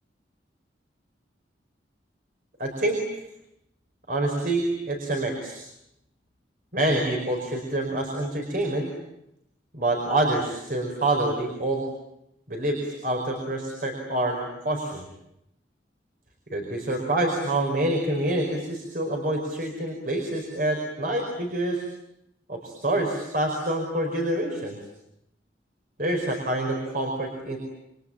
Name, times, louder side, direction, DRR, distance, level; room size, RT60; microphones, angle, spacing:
voice 1, 2.6-3.0 4.1-5.6 6.7-8.9 9.7-11.9 12.5-15.0 16.5-21.8 22.5-24.8 26.0-27.6, right 1 dB, 50° right, 2 dB, 5.0 m, -27 dB
29.0 x 23.0 x 8.8 m, 0.82 s
head